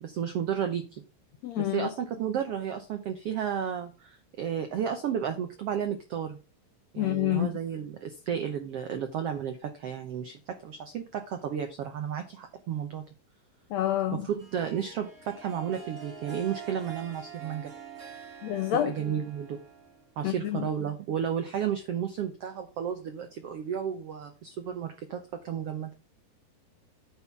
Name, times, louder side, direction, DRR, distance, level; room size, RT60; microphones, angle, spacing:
voice 1, 0.0-1.0 1.6-6.4 6.9-13.0 14.1-17.7 18.7-19.6 20.2-25.9, right 8 dB, 80° right, 1.3 m, -33 dB
voice 2, 1.4-1.9 7.0-7.5 13.7-14.3 18.4-18.9 20.2-20.7, left 13 dB, 85° left, 1.5 m, -28 dB
Harp, 14.4-20.2, right 7 dB, 30° right, 2.1 m, -45 dB
9.4 x 4.2 x 5.9 m
omnidirectional pair, 4.0 m